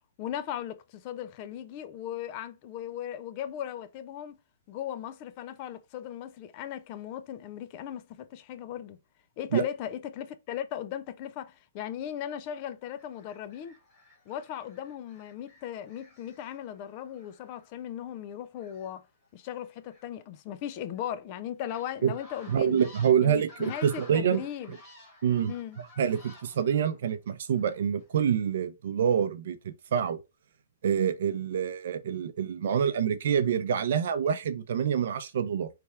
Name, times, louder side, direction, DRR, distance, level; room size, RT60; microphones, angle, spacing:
voice 1, 0.2-4.4 4.7-9.0 9.4-13.8 14.3-19.0 19.3-22.8 23.2-24.8 25.5-25.8, left 10 dB, 30° left, 0.3 m, -37 dB
sound 1, 13.0-17.8 18.5-21.2 21.6-28.1 28.5-28.6, left 2 dB, 10° left, 1.3 m, -54 dB
voice 2, 22.5-24.4 25.2-25.5 26.0-30.2 30.8-35.7, right 8 dB, 60° right, 0.6 m, -26 dB
3.3 x 2.3 x 4.3 m
hypercardioid pair, 170°, 0 cm